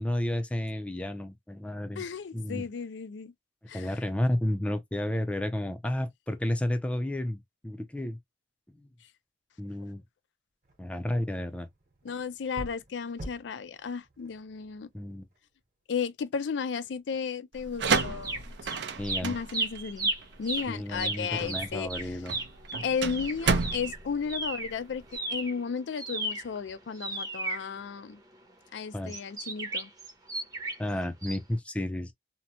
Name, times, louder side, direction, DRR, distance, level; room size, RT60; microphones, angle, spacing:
voice 1, 0.0-2.1 2.3-2.7 3.7-8.2 8.7-8.9 9.6-10.0 10.8-11.7 14.9-15.3 19.0-19.4 20.7-22.4 28.9-29.1 30.8-32.1, left 1 dB, 5° left, 0.4 m, -32 dB
voice 2, 2.0-3.3 3.7-4.0 12.0-14.9 15.9-18.5 19.2-20.1 20.4-22.2 22.8-25.0 25.3-28.2 28.7-29.9, left 6 dB, 80° left, 0.4 m, -34 dB
sound 1, 10.6-15.5, equal, 45° right, 1.0 m, -47 dB
sound 2, 17.5-25.1, right 4 dB, 70° right, 0.5 m, -32 dB
sound 3, 17.9-18.8 19.0-24.8 25.1-28.4 29.1-30.9 31.2-31.4, right 2 dB, 20° right, 0.7 m, -34 dB
2.8 x 2.1 x 2.7 m
head